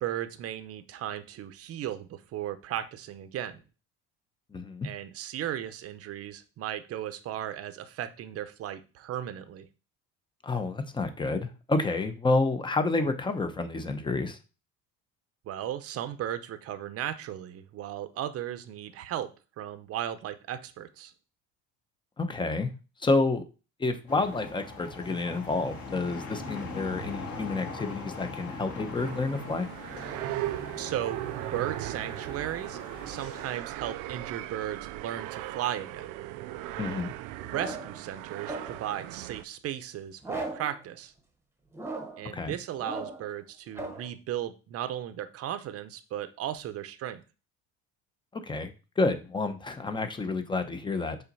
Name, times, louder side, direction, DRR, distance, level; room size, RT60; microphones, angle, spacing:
voice 1, 0.0-3.6 4.8-9.7 15.5-19.3 19.6-21.1 30.8-31.2 31.5-36.1 37.4-41.1 42.2-47.2, right 11 dB, 50° right, 11 dB, 0.8 m, -36 dB
voice 2, 4.5-4.9 10.4-14.4 22.2-22.7 23.0-23.4 23.8-29.7 36.8-37.1 42.2-42.6 48.3-51.2, left 3 dB, 15° left, 8 dB, 0.8 m, -29 dB
sound 1, 24.1-33.4, left 3 dB, 50° left, 2.4 m, -41 dB
sound 2, 29.0-39.4, right 15 dB, 80° right, 0.5 m, -38 dB
sound 3, 37.5-38.0 38.5-38.9 40.2-40.8 41.7-42.3 42.8-43.3 43.8-44.1, right 2 dB, 10° right, 1.1 m, -37 dB
5.6 x 4.0 x 5.3 m, 0.33 s
cardioid pair, 135°, 31 cm